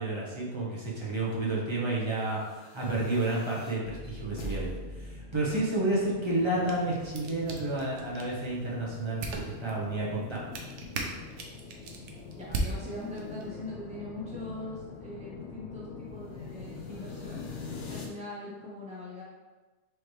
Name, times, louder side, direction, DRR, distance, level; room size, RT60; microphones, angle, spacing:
voice 1, 0.0-2.4 2.7-10.5, right 2 dB, 25° right, -6 dB, 0.9 m, -30 dB
sound 1, 2.3-18.1, left 3 dB, 80° left, 1.0 m, -44 dB
sound 2, 6.4-13.5, right 2 dB, 85° right, 1.0 m, -39 dB
voice 2, 12.4-17.4 17.9-19.2, left 2 dB, 10° right, -5 dB, 0.4 m, -41 dB
4.8 x 3.0 x 3.2 m, 1.3 s
omnidirectional pair, 1.2 m